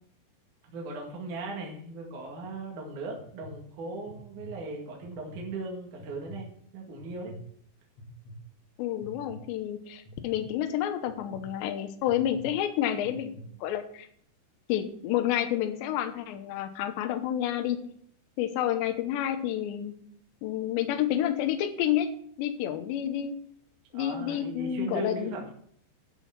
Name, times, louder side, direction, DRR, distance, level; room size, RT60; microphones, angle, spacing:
voice 1, 0.7-6.5 6.7-7.3 23.9-25.5, right 2 dB, 50° right, -1 dB, 3.0 m, -38 dB
sound 1, 2.1-2.5 3.1-3.5 4.0-4.5 5.0-5.4 6.0-6.4 7.0-7.4 8.0-8.3 9.0-9.4 10.1-10.4 11.1-11.4 12.0-12.4 13.0-13.4, left 2 dB, 40° left, 3.3 m, -47 dB
voice 2, 8.8-14.1 14.7-17.8 18.4-19.9 20.4-22.1 22.4-23.3 23.9-25.3, left 11 dB, 75° left, 8 dB, 3.1 m, -29 dB
12.5 x 6.2 x 5.9 m, 0.64 s
omnidirectional pair, 5.3 m